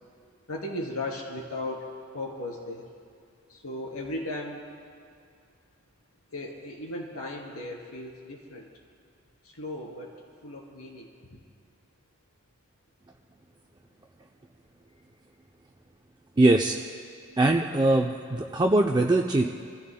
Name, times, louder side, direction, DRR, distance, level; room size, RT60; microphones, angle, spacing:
voice 1, 0.5-1.9 2.1-2.9 3.5-4.6 6.3-8.7 9.5-10.1 10.4-11.4, left 1 dB, 85° left, -1 dB, 3.1 m, -36 dB
voice 2, 16.4-16.8 17.4-19.5, right 2 dB, 20° right, 2 dB, 0.5 m, -22 dB
29.5 x 15.5 x 2.2 m, 2.3 s
head